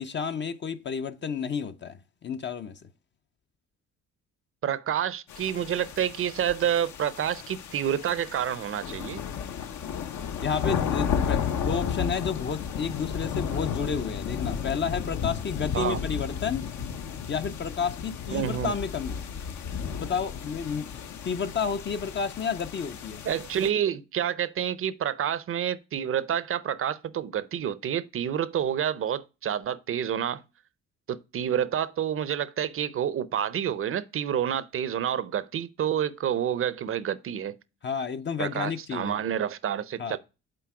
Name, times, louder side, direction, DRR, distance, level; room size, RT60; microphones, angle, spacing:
voice 1, 0.0-2.8 10.4-16.7 17.3-19.2 19.9-20.9 21.2-23.2 37.8-39.2 40.0-40.2, left 6 dB, 40° left, 0.5 m, -31 dB
voice 2, 4.6-9.2 15.7-16.0 18.3-18.7 23.2-30.4 31.1-37.5 38.4-40.2, right 9 dB, 45° right, 0.6 m, -28 dB
sound 1, 5.3-23.7, left 7 dB, 70° left, 0.9 m, -33 dB
7.7 x 4.1 x 4.7 m
cardioid pair, 90°, 30 cm